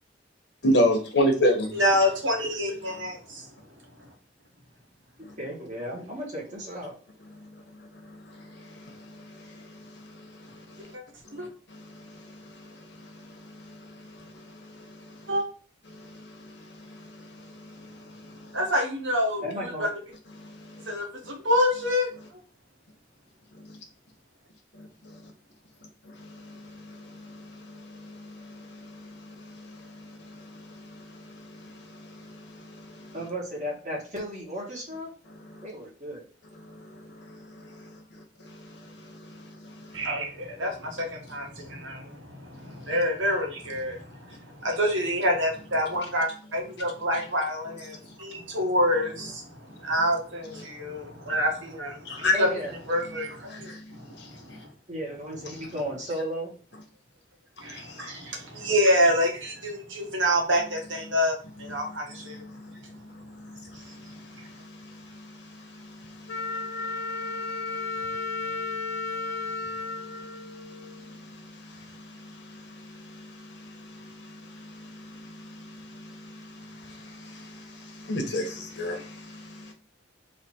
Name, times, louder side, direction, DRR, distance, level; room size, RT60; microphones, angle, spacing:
voice 1, 0.6-1.7 8.3-10.0 10.5-10.9 11.4-14.4 14.7-15.0 15.9-18.4 20.4-20.8 24.8-25.2 26.2-33.1 36.7-37.0 37.3-37.8 38.4-40.0 52.0-52.4 53.5-53.8 54.2-54.3 57.8-57.9 62.3-79.7, left 1 dB, 60° left, 2 dB, 1.2 m, -34 dB
voice 2, 1.7-3.5 11.3-11.5 15.3-15.4 18.5-19.9 20.9-22.1 39.9-52.5 52.9-54.7 57.6-62.4 63.7-63.8, equal, 85° right, 1 dB, 1.5 m, -27 dB
voice 3, 5.4-7.0 19.4-19.9 33.1-35.1 35.6-36.2 52.3-52.7 54.9-56.5, equal, 40° right, -3 dB, 1.7 m, -34 dB
Wind instrument woodwind instrument, 66.3-71.1, left 3 dB, 85° left, 1.4 m, -33 dB
4.1 x 2.9 x 4.4 m, 0.39 s
head